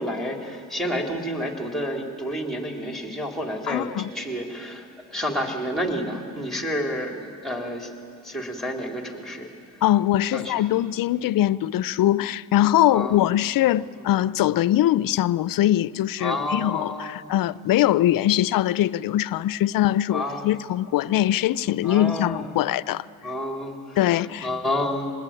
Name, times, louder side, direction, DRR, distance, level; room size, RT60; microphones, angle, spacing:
voice 1, 0.0-7.9 8.2-9.5 10.3-10.6 12.9-13.2 14.0-14.1 16.2-17.3 20.1-20.5 21.8-22.5 23.2-25.1, equal, ahead, 3.9 m, -30 dB
voice 2, 3.7-4.1 9.8-23.0 24.0-24.5, left 13 dB, 65° left, 0.6 m, -22 dB
26.0 x 20.0 x 9.0 m
cardioid pair, 80°, 36 cm